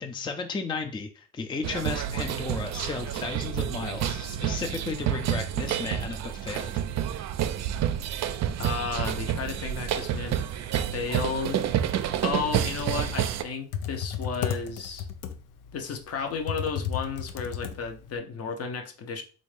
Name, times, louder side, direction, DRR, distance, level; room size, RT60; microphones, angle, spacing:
voice 1, 0.0-6.7, left 4 dB, 15° left, 0.4 m, -34 dB
sound 1, 1.6-13.4, right 10 dB, 60° right, 0.4 m, -29 dB
voice 2, 8.6-10.5 10.9-11.6 12.2-15.1 15.7-19.2, left 5 dB, 55° left, 0.7 m, -33 dB
Computer keyboard, 12.6-18.2, left 8 dB, 90° left, 0.5 m, -34 dB
3.4 x 2.5 x 3.2 m
cardioid pair, 90°, 30 cm